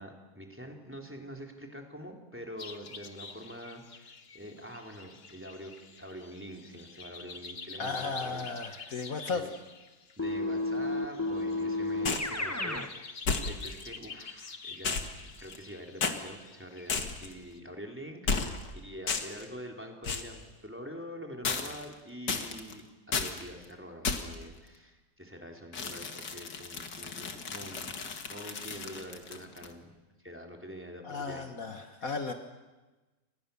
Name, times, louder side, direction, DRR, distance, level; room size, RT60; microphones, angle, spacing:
voice 1, 0.0-8.5 8.8-9.0 9.3-9.5 10.2-15.0 15.4-29.9 30.2-31.5, equal, 5° right, 2 dB, 3.6 m, -45 dB
sound 1, 2.6-17.6, left 4 dB, 35° left, 1.5 m, -48 dB
voice 2, 7.8-9.5 31.0-32.3, left 4 dB, 55° left, 6 dB, 1.9 m, -35 dB
Keyboard (musical), 10.2-12.9, left 2 dB, 10° left, 1.1 m, -32 dB
sound 2, 12.1-12.4 13.3-13.8 14.8-15.7 16.0-16.2 16.9-17.3 18.3-18.7 19.1-19.4 20.0-20.4 21.4-21.9 22.3-22.7 23.1-23.4 24.0-24.4 25.7-29.7, left 5 dB, 80° left, 2.6 m, -33 dB
30.0 x 25.5 x 7.1 m, 1.2 s
omnidirectional pair, 1.8 m